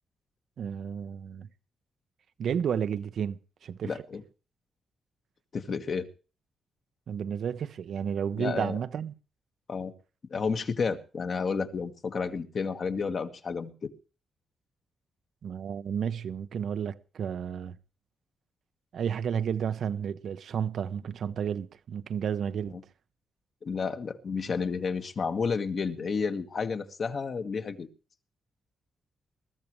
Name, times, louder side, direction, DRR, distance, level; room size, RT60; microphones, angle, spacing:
voice 1, 0.6-1.5 2.4-3.9 7.1-9.1 15.4-17.8 18.9-22.8, right 8 dB, 70° right, 0.8 m, -32 dB
voice 2, 3.8-4.2 5.5-6.1 8.4-8.8 9.7-9.9 10.3-13.9 22.7-22.8 23.6-27.9, left 5 dB, 50° left, 1.5 m, -31 dB
21.0 x 13.5 x 3.1 m
cardioid pair, 90°, 0 cm